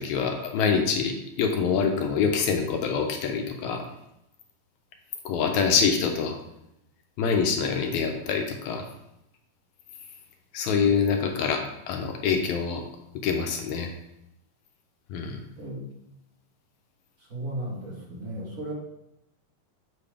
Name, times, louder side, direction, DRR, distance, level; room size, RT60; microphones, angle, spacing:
voice 1, 0.0-3.8 5.3-6.4 7.2-8.8 10.5-12.8 13.2-13.9 15.1-15.4, left 6 dB, 75° left, 3 dB, 2.0 m, -25 dB
voice 2, 10.8-11.1 15.6-15.8 17.2-18.7, right 1 dB, 35° right, -4 dB, 1.5 m, -36 dB
7.6 x 6.0 x 3.4 m, 0.85 s
omnidirectional pair, 3.7 m